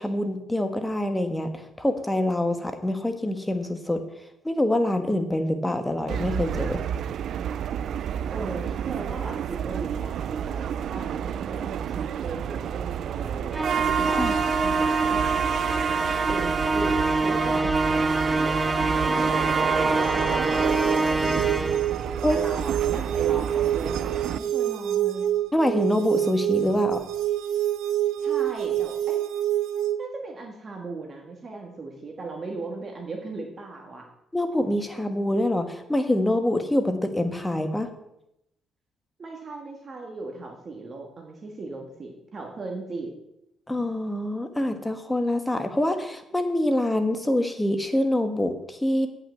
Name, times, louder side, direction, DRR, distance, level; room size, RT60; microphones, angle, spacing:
voice 1, 0.0-4.0 4.4-6.8 14.2-14.4 14.6-14.7 22.2-22.4 25.5-27.0 34.3-37.9 43.7-49.1, left 1 dB, 10° left, 7 dB, 1.4 m, -25 dB
sound 1, 6.1-24.4, right 8 dB, 70° right, 0.3 m, -29 dB
voice 2, 8.3-15.2 16.3-21.9 22.3-25.3 28.2-29.2 30.0-34.1 39.2-43.1, right 3 dB, 40° right, 2 dB, 1.8 m, -37 dB
Musical instrument, 13.5-22.0, right 2 dB, 15° right, 0.6 m, -26 dB
sound 2, 20.0-30.0, right 12 dB, 90° right, 0.7 m, -27 dB
8.6 x 5.9 x 8.1 m, 0.83 s
cardioid pair, 90°, 0 cm